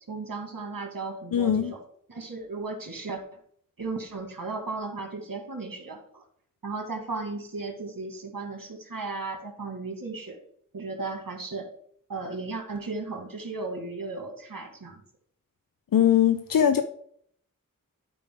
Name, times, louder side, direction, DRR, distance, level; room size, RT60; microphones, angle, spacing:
voice 1, 0.1-1.8 2.1-3.2 3.8-6.2 6.6-10.4 10.7-11.7 12.1-15.0, right 3 dB, 85° right, 3 dB, 2.2 m, -35 dB
voice 2, 1.3-1.7 15.9-16.8, left 9 dB, 90° left, 9 dB, 0.6 m, -21 dB
11.5 x 5.1 x 3.8 m, 0.63 s
wide cardioid pair, 60°, 33 cm